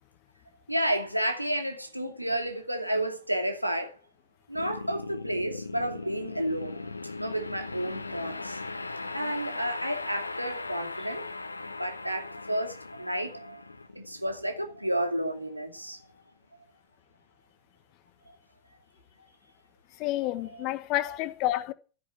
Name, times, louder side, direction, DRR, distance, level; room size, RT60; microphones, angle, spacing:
voice 1, 0.7-3.9 4.5-6.9 7.2-8.6 8.9-11.3 11.8-13.6 13.9-16.0 20.2-20.7, right 1 dB, 90° right, 2.6 m, -31 dB
sound 1, 4.5-15.7, left 3 dB, 80° left, 1.1 m, -39 dB
voice 2, 20.0-21.7, left 15 dB, 40° left, 1.4 m, -29 dB
13.5 x 8.8 x 8.1 m
figure-of-eight pair, 90°, 0 cm